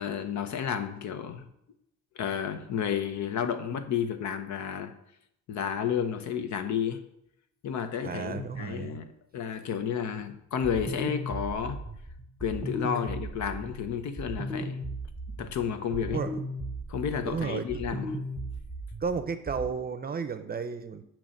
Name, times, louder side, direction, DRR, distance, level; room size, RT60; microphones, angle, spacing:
voice 1, 0.0-1.5 2.2-4.9 5.5-7.0 7.6-11.8 12.4-14.8 15.4-16.2 16.9-18.2, left 8 dB, 70° left, 10 dB, 0.8 m, -31 dB
voice 2, 8.0-9.0 16.1-16.4 17.3-17.7 19.0-21.0, right 5 dB, 30° right, 10 dB, 0.6 m, -33 dB
sound 1, 10.6-19.7, right 1 dB, ahead, 0.9 m, -37 dB
8.7 x 3.0 x 6.4 m, 0.77 s
cardioid pair, 90°, 30 cm